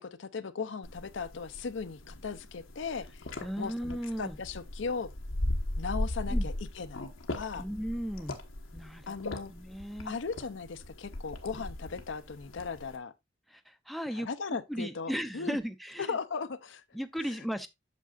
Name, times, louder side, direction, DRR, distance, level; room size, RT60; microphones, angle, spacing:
voice 1, 0.0-3.3 3.6-5.1 5.8-7.6 9.1-9.5 10.0-13.1 14.1-15.6 16.0-16.8, left 5 dB, 65° left, 0.6 m, -37 dB
sound 1, 0.8-13.0, left 1 dB, 90° left, 1.3 m, -38 dB
voice 2, 3.4-4.4 6.3-6.5 7.6-8.4 8.7-10.2 13.5-14.3 14.7-16.2 16.9-17.7, equal, ahead, 0.5 m, -36 dB
8.4 x 6.6 x 2.4 m
head